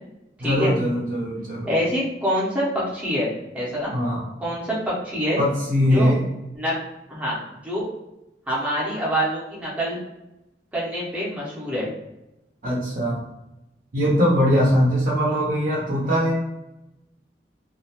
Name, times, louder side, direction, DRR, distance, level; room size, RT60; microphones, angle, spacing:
voice 1, 0.4-1.7 3.9-4.3 5.4-6.2 12.6-13.2 13.9-16.4, equal, 50° right, -5 dB, 0.6 m, -21 dB
voice 2, 1.7-2.6 2.9-3.3 3.5-3.9 4.4-5.4 5.9-6.1 6.5-6.7 7.1-7.4 7.6-7.9 8.5-10.0 10.7-11.9, equal, 10° right, -7 dB, 0.6 m, -25 dB
2.3 x 2.1 x 2.7 m, 0.94 s
head